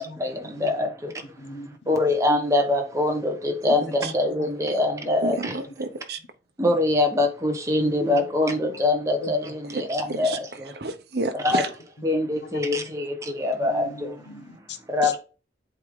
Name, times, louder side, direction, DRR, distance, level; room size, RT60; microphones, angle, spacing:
voice 1, 0.0-1.1 1.9-5.6 6.6-10.7 11.4-11.6 12.0-14.1 14.9-15.2, left 2 dB, 15° right, 1.1 m, -24 dB
voice 2, 1.2-2.0 3.7-4.7 5.0-5.6 7.8-8.2 9.2-9.3 10.0-10.2 12.0-12.1 12.4-12.9 13.6-15.1, left 2 dB, 80° left, 1.0 m, -40 dB
voice 3, 5.2-6.2 9.7-9.8 10.1-11.7, right 3 dB, 65° right, 0.9 m, -30 dB
8.1 x 3.6 x 3.7 m
head